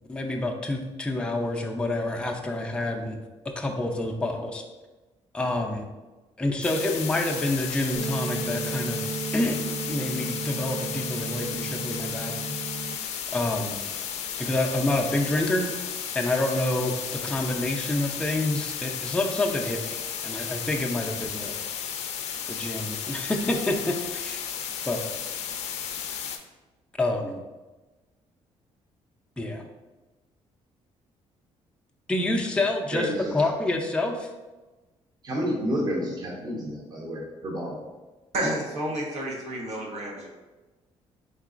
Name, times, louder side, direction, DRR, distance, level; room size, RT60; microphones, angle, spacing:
voice 1, 0.1-3.2 3.4-4.6 5.3-5.9 6.4-9.1 9.3-9.6 9.9-12.5 13.3-13.8 14.4-15.7 16.1-21.6 22.5-24.4 24.8-25.0 27.0-27.4 29.4-29.7 32.1-34.3, left 2 dB, 10° left, 1 dB, 0.4 m, -28 dB
sound 1, 6.6-26.4, left 8 dB, 70° left, 0.4 m, -34 dB
sound 2, 8.0-13.0, right 5 dB, 55° right, 0.3 m, -34 dB
voice 2, 35.2-37.8, equal, 35° right, -2 dB, 0.8 m, -30 dB
voice 3, 38.3-40.3, right 1 dB, 80° right, -1 dB, 1.0 m, -30 dB
3.9 x 3.8 x 2.5 m, 1.2 s
cardioid pair, 105°, 12 cm